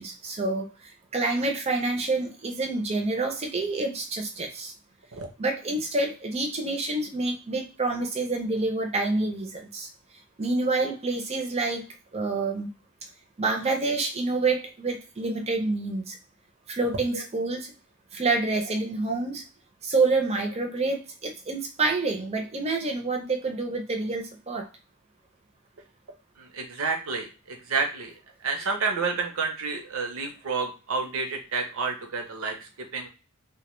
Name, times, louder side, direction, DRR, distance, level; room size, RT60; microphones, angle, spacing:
voice 1, 0.0-4.7 5.4-9.9 10.4-11.8 12.1-12.7 13.4-16.2 16.7-17.7 18.1-19.4 19.8-24.7, right 3 dB, 30° right, 3 dB, 0.5 m, -27 dB
voice 2, 26.4-28.1 28.4-33.1, right 4 dB, 70° right, 4 dB, 0.6 m, -30 dB
2.1 x 2.1 x 3.0 m, 0.33 s
head